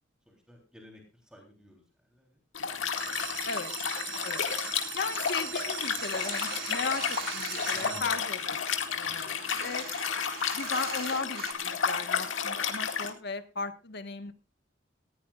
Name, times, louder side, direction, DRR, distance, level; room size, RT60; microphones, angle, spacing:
voice 1, 0.3-1.8 2.1-2.4 7.7-8.1 8.7-9.2, left 1 dB, 5° right, 0 dB, 3.4 m, -51 dB
Liquid, 2.5-13.1, left 6 dB, 80° left, 2.1 m, -32 dB
sound 1, 3.0-8.6 9.2-9.7 10.1-10.2 10.4-10.5 10.9-11.1, right 12 dB, 75° right, 1.1 m, -41 dB
voice 2, 4.9-8.7 8.9-9.9 10.5-14.3, left 4 dB, 60° left, 9 dB, 1.4 m, -36 dB
sound 2, 5.3-7.8 8.3-11.5, right 7 dB, 55° right, 2.2 m, -43 dB
19.0 x 15.5 x 2.5 m, 0.32 s
head